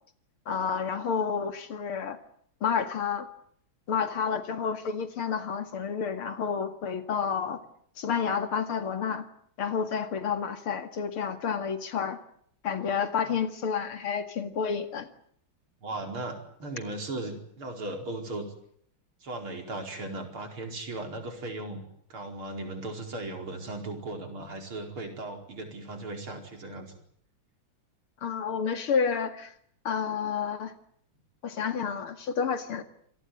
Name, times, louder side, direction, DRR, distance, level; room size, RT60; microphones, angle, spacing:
voice 1, 0.5-2.2 2.6-3.3 3.9-7.6 8.0-9.3 9.6-12.2 12.6-15.1 28.2-29.5 29.8-30.7 31.4-32.8, left 6 dB, 85° left, 9 dB, 3.0 m, -30 dB
voice 2, 15.8-18.5 19.2-21.8 22.1-27.0, right 2 dB, 80° right, 4 dB, 5.6 m, -37 dB
28.0 x 18.0 x 9.6 m, 0.66 s
omnidirectional pair, 2.3 m